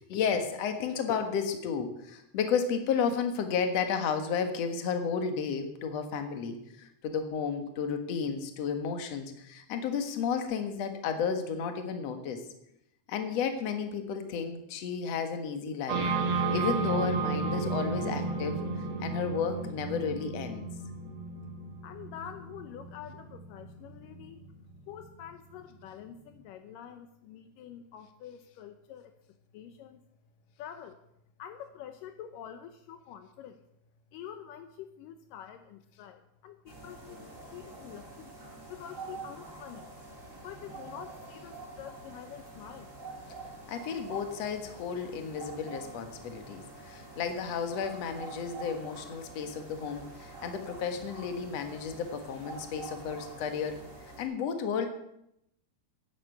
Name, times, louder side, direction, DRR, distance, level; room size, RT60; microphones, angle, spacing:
voice 1, 0.1-12.4 13.1-16.0 16.4-18.7 19.0-20.7 43.7-53.8 54.2-54.9, left 6 dB, 55° left, 6 dB, 1.9 m, -32 dB
sound 1, 15.9-25.5, right 3 dB, 70° right, 3.2 m, -33 dB
voice 2, 21.8-24.5 24.9-29.1 29.5-30.0 30.6-31.0 31.4-33.6 34.1-38.4 38.7-39.9 40.4-42.9, left 9 dB, 85° left, 8 dB, 1.9 m, -46 dB
sound 2, 36.7-54.2, right 2 dB, 20° right, 3.8 m, -46 dB
11.5 x 10.5 x 8.0 m, 0.80 s
omnidirectional pair, 4.9 m